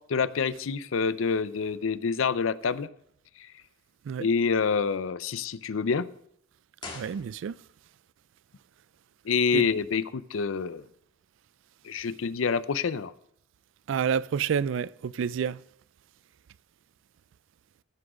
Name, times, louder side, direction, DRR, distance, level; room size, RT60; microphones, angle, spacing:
voice 1, 0.1-2.9 4.2-6.1 9.2-10.8 11.8-13.1, left 5 dB, 85° left, 0.5 m, -27 dB
sound 1, 6.8-8.1, left 3 dB, 25° left, 1.8 m, -44 dB
voice 2, 6.9-7.5 9.5-9.6 13.9-15.6, right 7 dB, 70° right, 0.3 m, -29 dB
14.5 x 6.2 x 4.9 m
head